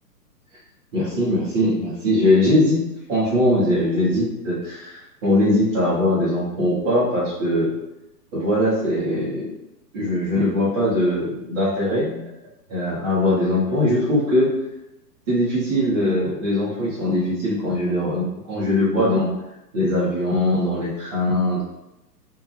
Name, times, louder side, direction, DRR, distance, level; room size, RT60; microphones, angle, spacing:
voice 1, 0.9-2.8 3.1-7.7 8.3-9.4 9.9-12.2 12.7-14.5 15.3-19.3 19.7-21.6, left 1 dB, 15° right, -7 dB, 0.6 m, -21 dB
2.5 x 2.2 x 3.2 m, 0.90 s
figure-of-eight pair, 125°, 49 cm